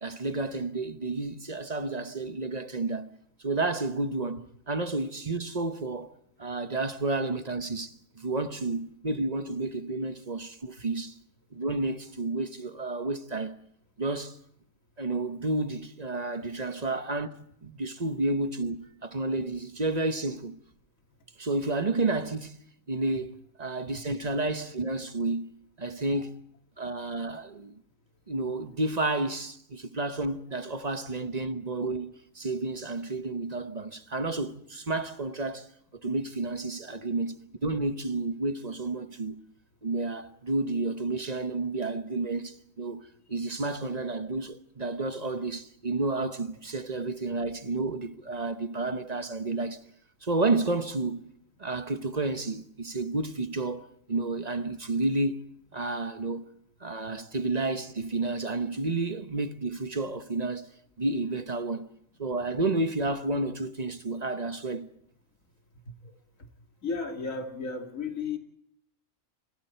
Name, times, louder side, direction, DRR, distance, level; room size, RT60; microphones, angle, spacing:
voice 1, 0.0-3.1 3.4-11.2 11.5-13.6 14.0-14.4 15.0-17.3 17.6-20.6 21.4-22.6 22.9-26.4 26.8-27.8 28.3-39.4 39.8-43.0 43.3-49.8 50.2-51.3 51.6-55.4 55.7-56.5 56.8-60.7 61.0-61.9 62.2-64.9, right 2 dB, 35° right, 1.1 m, -31 dB
voice 2, 66.8-68.4, left 4 dB, 90° left, 2.9 m, -33 dB
29.0 x 26.5 x 4.5 m
omnidirectional pair, 1.3 m